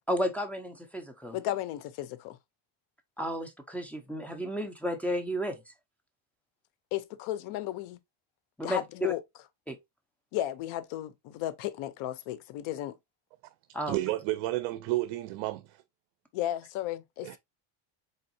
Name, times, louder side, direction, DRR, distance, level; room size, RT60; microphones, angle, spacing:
voice 1, 0.1-1.4 3.2-5.6 8.6-9.1 9.7-9.8 13.7-14.0, equal, 5° left, 0.4 m, -32 dB
voice 2, 1.3-2.4 6.9-8.0 8.6-9.2 10.3-12.9 16.3-17.4, left 13 dB, 70° left, 0.7 m, -34 dB
voice 3, 13.9-15.8 17.2-17.4, right 17 dB, 75° right, 0.5 m, -31 dB
4.0 x 3.5 x 2.6 m
cardioid pair, 130°, 49 cm